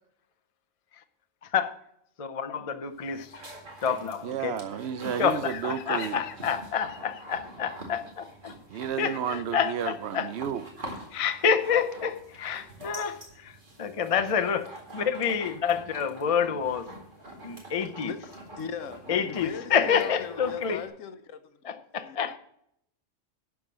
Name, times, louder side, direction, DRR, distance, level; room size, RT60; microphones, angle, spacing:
voice 1, 2.2-3.4 3.8-4.5 5.2-8.5 9.0-10.3 11.1-13.5 13.8-16.9 17.4-18.1 19.1-20.8 21.6-22.4, left 7 dB, 40° left, 0.5 m, -28 dB
sound 1, 2.8-20.9, right 1 dB, 40° right, 2.3 m, -46 dB
voice 2, 4.2-6.2 8.7-10.7, right 9 dB, 65° right, 0.8 m, -32 dB
voice 3, 18.0-22.3, left 6 dB, 80° left, 1.1 m, -40 dB
12.0 x 4.8 x 7.4 m
omnidirectional pair, 1.3 m